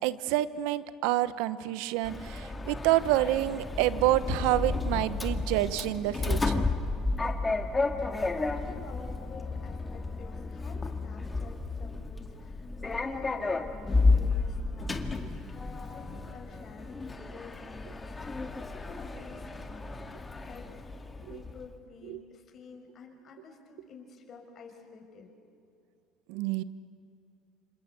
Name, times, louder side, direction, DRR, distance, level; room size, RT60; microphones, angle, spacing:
voice 1, 0.0-6.6 21.3-21.4 22.1-22.2 26.3-26.6, right 14 dB, 80° right, 15 dB, 1.0 m, -28 dB
Sliding door, 2.0-21.6, left 3 dB, 20° left, 2.1 m, -32 dB
voice 2, 7.6-18.5 18.8-20.8 21.1-25.3, left 4 dB, 45° left, 2 dB, 6.2 m, -50 dB
27.5 x 26.5 x 8.1 m, 2.5 s
supercardioid pair, 95°, 0 cm